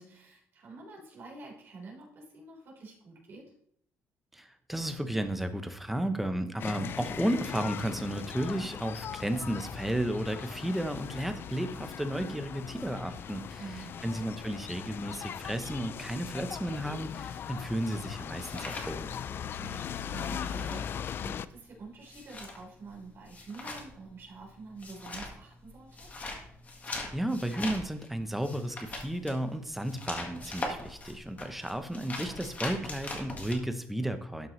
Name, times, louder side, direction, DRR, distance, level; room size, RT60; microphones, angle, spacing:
voice 1, 0.0-3.5 13.6-14.2 19.6-26.1, right 3 dB, 50° right, -3 dB, 3.9 m, -47 dB
voice 2, 4.3-19.1 27.1-34.5, right 1 dB, 5° right, 8 dB, 0.7 m, -33 dB
sound 1, 6.6-21.5, left 8 dB, 45° left, 0.3 m, -39 dB
sound 2, 18.3-19.6 19.9-33.6, left 2 dB, 30° left, 1.6 m, -41 dB
12.0 x 5.8 x 3.1 m, 0.68 s
cardioid pair, 135°, 5 cm